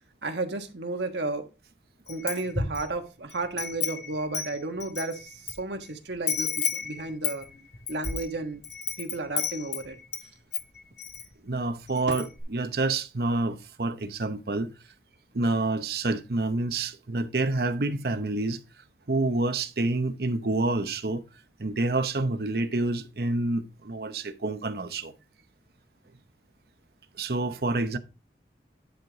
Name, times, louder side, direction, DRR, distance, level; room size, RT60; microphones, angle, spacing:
voice 1, 0.2-1.5 2.1-7.5 7.9-8.6 9.0-10.0 12.1-12.2, right 2 dB, 80° right, 1.3 m, -33 dB
Wind chime, 2.1-2.9 3.3-5.5 5.8-5.9 6.3-10.3 10.5-11.3 11.6-11.7 12.0-12.4, left 7 dB, 75° left, 2.3 m, -32 dB
voice 2, 11.4-14.7 15.3-18.6 19.1-21.2 21.6-25.1 27.2-28.0, right 2 dB, 60° right, 0.8 m, -28 dB
10.5 x 4.7 x 3.9 m
head